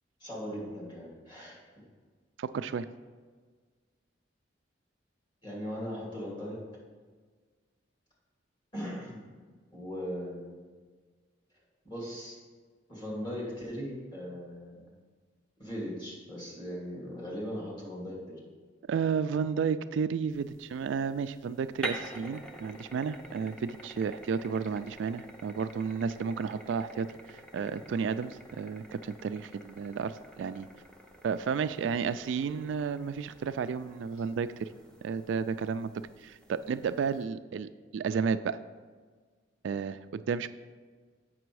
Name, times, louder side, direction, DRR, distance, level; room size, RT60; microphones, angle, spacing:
voice 1, 0.2-1.6 5.4-6.6 8.7-9.2 9.7-10.6 11.8-12.4 12.9-14.9 15.6-18.4, equal, 25° left, -5 dB, 2.7 m, -39 dB
voice 2, 2.4-2.9 18.9-30.7 31.2-34.7 35.0-35.9 36.2-38.6 39.6-40.5, right 6 dB, 75° right, 12 dB, 0.3 m, -32 dB
sound 1, 20.3-37.2, right 1 dB, 5° left, 0.6 m, -48 dB
7.8 x 6.0 x 4.7 m, 1.5 s
head